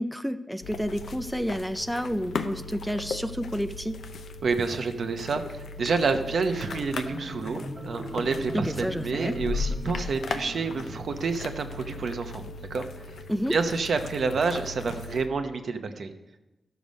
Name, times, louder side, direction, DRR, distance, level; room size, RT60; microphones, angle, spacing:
voice 1, 0.0-4.0 8.5-9.4 13.3-13.6, equal, ahead, 10 dB, 0.3 m, -30 dB
sound 1, 0.6-15.3, left 4 dB, 75° left, 0.7 m, -37 dB
voice 2, 4.4-12.4 12.7-12.9 13.5-16.1, right 4 dB, 60° right, 7 dB, 0.8 m, -28 dB
Marimba xylophone, 6.4-11.9, equal, 20° right, 0.9 m, -41 dB
12.5 x 6.8 x 5.2 m, 1.0 s
wide cardioid pair, 135°, 0 cm